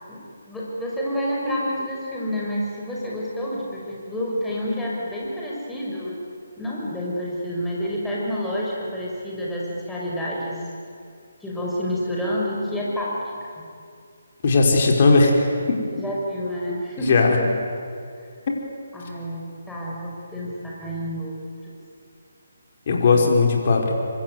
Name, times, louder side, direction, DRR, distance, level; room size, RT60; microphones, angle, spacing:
voice 1, 0.5-6.2 6.6-10.6 11.4-13.6 15.9-17.5 18.9-21.3 21.6-21.7, equal, 5° left, -5 dB, 5.9 m, -29 dB
voice 2, 14.4-15.8 17.0-17.4 22.9-23.9, left 3 dB, 45° left, 1 dB, 5.2 m, -18 dB
25.0 x 25.0 x 9.5 m, 2.3 s
figure-of-eight pair, 145°, 0 cm